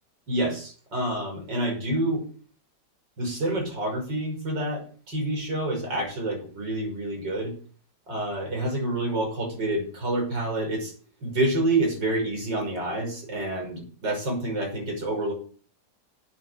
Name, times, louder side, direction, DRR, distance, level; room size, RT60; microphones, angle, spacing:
voice 1, 0.3-2.3 3.2-7.5 8.1-10.9 11.2-15.3, right 1 dB, 90° right, 2 dB, 6.5 m, -28 dB
11.5 x 8.9 x 8.0 m, 0.43 s
omnidirectional pair, 1.9 m